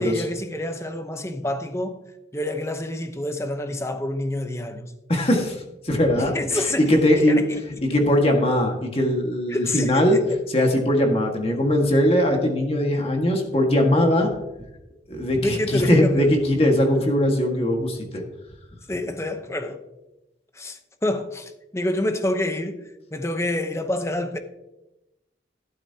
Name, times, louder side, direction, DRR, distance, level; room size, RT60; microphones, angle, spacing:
voice 1, 0.0-2.0 2.3-4.9 6.2-7.0 7.3-7.6 9.5-10.2 15.4-16.3 18.1-18.2 18.9-19.8 20.5-24.4, left 1 dB, 15° left, 0.8 m, -27 dB
voice 2, 5.1-5.6 5.8-7.4 7.8-10.2 10.5-14.3 15.1-18.2, left 1 dB, 35° left, 1.7 m, -20 dB
12.5 x 12.0 x 2.8 m
head